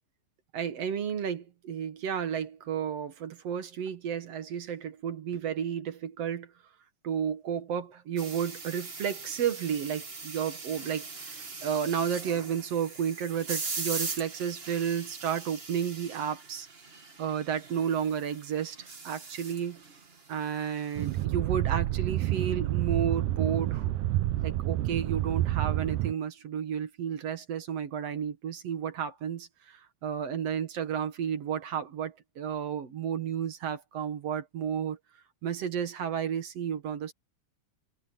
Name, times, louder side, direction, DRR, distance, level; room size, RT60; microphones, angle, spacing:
voice 1, 0.5-6.5 7.0-16.7 17.2-19.8 20.3-23.9 24.4-35.0 35.4-37.1, right 8 dB, 60° right, 2.6 m, -32 dB
sound 1, 8.2-21.2, right 4 dB, 30° right, 1.2 m, -41 dB
sound 2, 21.0-26.1, right 15 dB, 90° right, 2.3 m, -29 dB
omnidirectional pair, 3.4 m